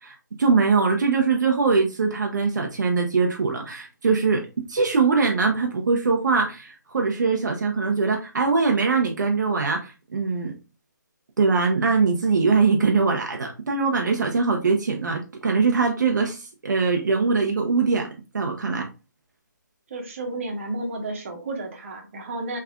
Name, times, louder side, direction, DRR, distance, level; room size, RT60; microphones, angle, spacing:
voice 1, 0.0-4.4 4.7-10.5 11.4-18.1 18.3-18.9, right 4 dB, 65° right, 2 dB, 0.7 m, -22 dB
voice 2, 19.9-22.6, right 2 dB, 40° right, 2 dB, 1.0 m, -32 dB
3.6 x 3.2 x 2.3 m, 0.31 s
hypercardioid pair, 160°, 10 cm